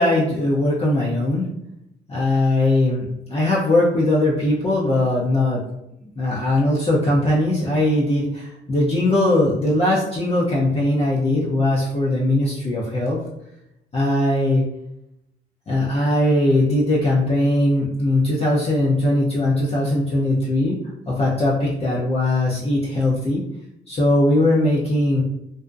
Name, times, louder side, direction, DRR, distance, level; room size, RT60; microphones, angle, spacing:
voice 1, 0.0-1.5 2.1-5.6 6.2-13.2 13.9-14.6 15.7-20.8 21.1-23.4 23.9-25.2, left 1 dB, 30° left, -5 dB, 0.6 m, -20 dB
2.6 x 2.1 x 2.4 m, 0.83 s
supercardioid pair, 65°, 20 cm